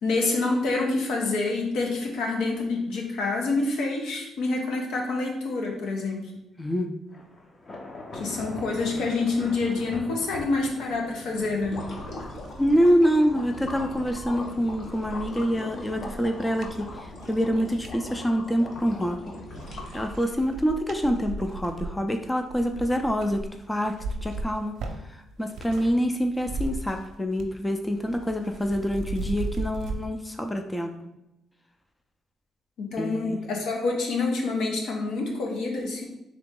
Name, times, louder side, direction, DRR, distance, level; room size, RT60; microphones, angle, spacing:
voice 1, 0.0-6.2 8.1-11.8 32.8-36.1, left 3 dB, 85° left, 1 dB, 0.9 m, -27 dB
voice 2, 6.6-6.9 12.6-16.9 17.3-19.2 19.9-23.9 24.2-24.7 25.4-31.0 32.9-33.4, equal, 15° left, 5 dB, 0.4 m, -26 dB
sound 1, 7.1-14.0, left 2 dB, 35° left, 0.8 m, -42 dB
sound 2, 11.3-11.4 11.9-18.0 18.6-19.2 19.5-25.9 26.2-27.6 27.9-30.0, right 3 dB, 75° right, 0.6 m, -38 dB
sound 3, 11.6-20.4, left 1 dB, 60° left, 1.0 m, -40 dB
3.8 x 3.0 x 3.6 m, 0.89 s
cardioid pair, 90°, 0 cm